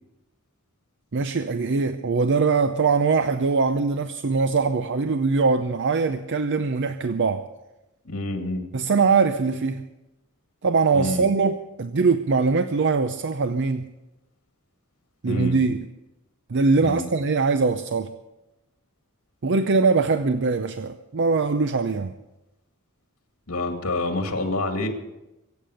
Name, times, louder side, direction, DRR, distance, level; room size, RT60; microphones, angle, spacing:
voice 1, 1.1-7.5 8.7-9.8 10.6-13.9 15.2-15.8 16.5-18.1 19.4-22.1, right 4 dB, 55° right, 10 dB, 0.6 m, -22 dB
voice 2, 8.0-8.7 10.9-11.3 15.3-15.6 16.8-17.1 23.5-24.9, left 2 dB, 75° left, 4 dB, 2.3 m, -27 dB
23.5 x 8.7 x 6.5 m, 0.99 s
head